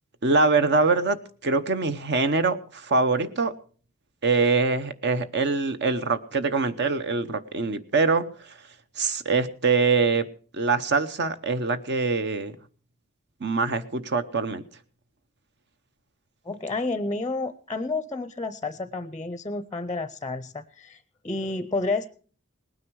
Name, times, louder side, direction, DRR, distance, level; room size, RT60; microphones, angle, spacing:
voice 1, 0.2-3.5 4.2-8.2 9.0-10.3 10.5-12.5 13.4-14.6, right 4 dB, 55° right, 10 dB, 0.9 m, -24 dB
voice 2, 16.5-22.1, left 3 dB, 15° left, 13 dB, 0.6 m, -30 dB
19.5 x 9.5 x 4.7 m, 0.43 s
head